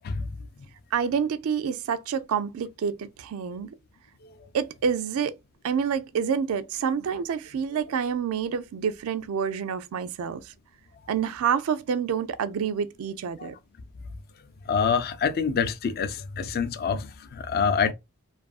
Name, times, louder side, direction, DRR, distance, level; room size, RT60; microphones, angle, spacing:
voice 1, 0.9-3.7 4.5-5.4 5.6-10.5 11.1-13.5, right 7 dB, 75° right, 0.3 m, -28 dB
voice 2, 14.7-17.9, left 6 dB, 45° left, 0.4 m, -26 dB
2.6 x 2.4 x 2.3 m
head